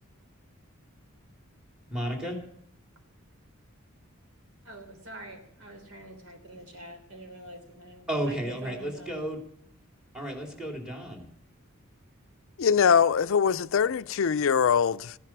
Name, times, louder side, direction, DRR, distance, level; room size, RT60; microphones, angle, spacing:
voice 1, 1.9-2.4 8.1-9.4 10.1-11.3, right 1 dB, 5° right, 3.1 m, -32 dB
voice 2, 4.6-9.2, right 1 dB, 90° right, 3.6 m, -46 dB
voice 3, 12.6-15.2, left 7 dB, 65° left, 0.4 m, -23 dB
15.5 x 11.0 x 6.0 m
head